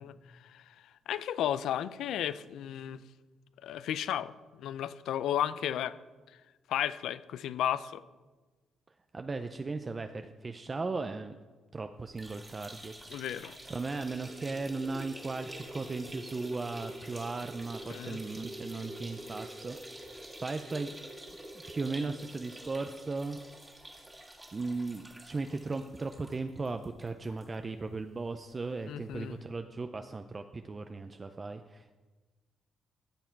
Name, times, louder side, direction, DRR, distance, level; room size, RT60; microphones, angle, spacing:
voice 1, 0.0-3.0 3.6-6.0 6.3-6.4 6.7-8.0 13.1-13.6 17.9-18.2 28.9-29.4, left 10 dB, 80° left, 16 dB, 0.4 m, -34 dB
voice 2, 9.1-11.4 11.7-12.9 13.6-19.8 20.1-20.9 21.7-23.4 24.5-32.0, right 3 dB, 30° right, 7 dB, 0.5 m, -37 dB
sound 1, 12.1-27.5 27.8-27.9 28.2-28.3 29.3-29.4, right 1 dB, 10° right, 1.9 m, -46 dB
14.5 x 7.1 x 4.6 m, 1.3 s
cardioid pair, 90°, 0 cm